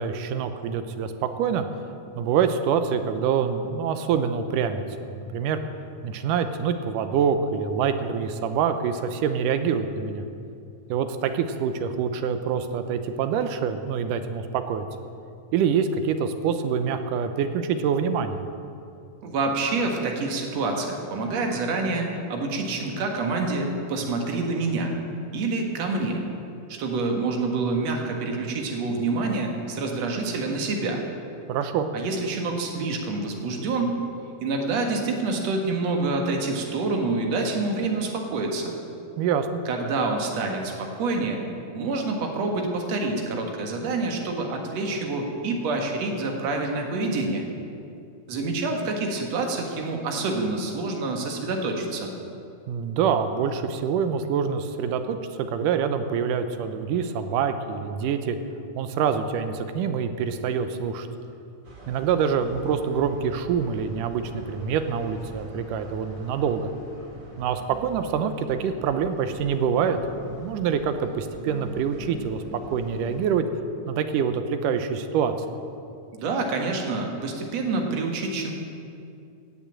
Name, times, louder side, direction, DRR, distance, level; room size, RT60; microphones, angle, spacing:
voice 1, 0.0-1.6 2.2-5.6 6.0-10.2 10.9-14.9 15.5-18.4 31.5-31.9 39.2-39.6 52.7-58.4 58.8-61.1 61.9-66.7 67.4-73.5 73.9-75.3, right 7 dB, 90° right, 9 dB, 2.4 m, -26 dB
voice 2, 19.2-24.9 25.3-26.2 26.7-31.0 31.9-33.9 34.4-38.7 39.7-41.4 41.7-47.5 48.3-52.1 76.1-78.5, right 3 dB, 60° right, 2 dB, 2.6 m, -27 dB
sound 1, 61.6-73.3, right 1 dB, 30° right, 2.0 m, -45 dB
17.0 x 7.3 x 8.8 m, 2.5 s
omnidirectional pair, 3.7 m